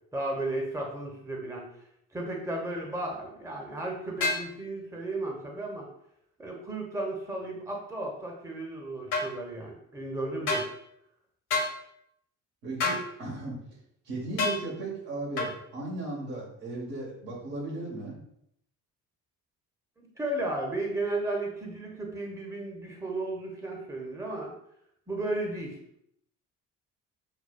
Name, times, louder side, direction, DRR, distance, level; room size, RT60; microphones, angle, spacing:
voice 1, 0.1-1.7 2.1-5.9 6.4-10.7 20.0-24.5 25.1-25.8, right 2 dB, 5° right, 0 dB, 0.8 m, -34 dB
sound 1, 4.2-4.5 9.1-9.3 10.5-10.7 11.5-11.7 12.8-13.0 14.4-14.6 15.4-15.5, left 3 dB, 60° left, 1.2 m, -27 dB
voice 2, 12.6-13.6 14.0-18.2, right 2 dB, 75° right, -5 dB, 1.3 m, -36 dB
5.8 x 2.2 x 2.2 m, 0.74 s
figure-of-eight pair, 45°, 47 cm